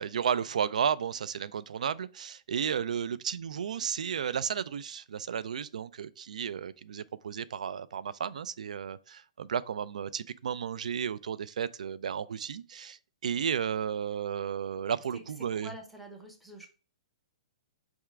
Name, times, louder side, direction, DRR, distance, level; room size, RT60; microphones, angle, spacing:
voice 1, 0.0-15.7, right 7 dB, 80° right, 0.4 m, -33 dB
voice 2, 15.5-16.7, equal, ahead, 0.6 m, -46 dB
4.8 x 3.5 x 3.2 m
hypercardioid pair, 180°, 4 cm